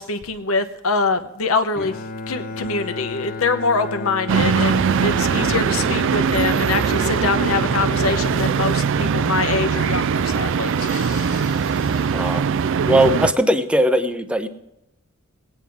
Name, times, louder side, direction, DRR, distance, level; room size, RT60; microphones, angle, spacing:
voice 1, 0.0-1.9 2.3-11.6, left 4 dB, 85° left, 9 dB, 0.9 m, -24 dB
Bowed string instrument, 1.7-10.0, left 3 dB, 45° left, 0.7 m, -33 dB
sound 1, 4.3-13.3, right 6 dB, 65° right, 0.4 m, -21 dB
voice 2, 12.1-12.4 12.9-14.5, right 1 dB, 5° right, 10 dB, 0.6 m, -19 dB
18.5 x 9.2 x 3.6 m, 0.85 s
head